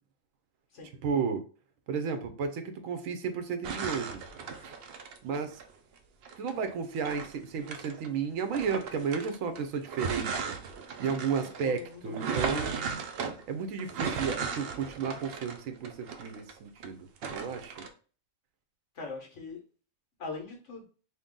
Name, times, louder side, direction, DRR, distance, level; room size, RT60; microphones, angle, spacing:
voice 1, 1.0-1.4 1.9-4.2 4.6-4.7 5.2-5.6 6.4-10.5 11.0-13.0 13.5-17.8, right 6 dB, 85° right, 7 dB, 1.0 m, -33 dB
sound 1, 3.6-5.7 6.2-8.1 8.5-16.9 17.2-17.9, right 5 dB, 60° right, 0.7 m, -36 dB
voice 2, 11.4-12.7 18.9-19.6 20.2-20.8, left 4 dB, 65° left, 1 dB, 1.3 m, -41 dB
3.0 x 2.8 x 3.6 m, 0.39 s
omnidirectional pair, 1.4 m